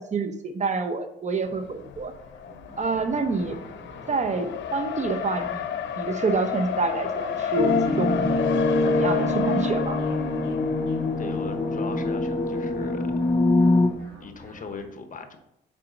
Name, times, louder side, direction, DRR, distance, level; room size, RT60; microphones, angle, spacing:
voice 1, 0.0-2.1 2.8-3.6 4.1-5.7 6.0-8.3 8.8-10.0, right 4 dB, 35° right, 8 dB, 0.8 m, -27 dB
Race car auto racing, 1.4-14.1, left 9 dB, 70° left, 0.7 m, -32 dB
sound 1, 2.4-14.8, right 1 dB, 65° right, 3.0 m, -47 dB
sound 2, 7.6-13.9, left 2 dB, 25° left, 0.6 m, -24 dB
voice 2, 11.2-13.1 14.2-15.4, left 4 dB, 40° left, 7 dB, 1.1 m, -38 dB
5.8 x 5.0 x 5.1 m, 0.81 s
cardioid pair, 90°, 20 cm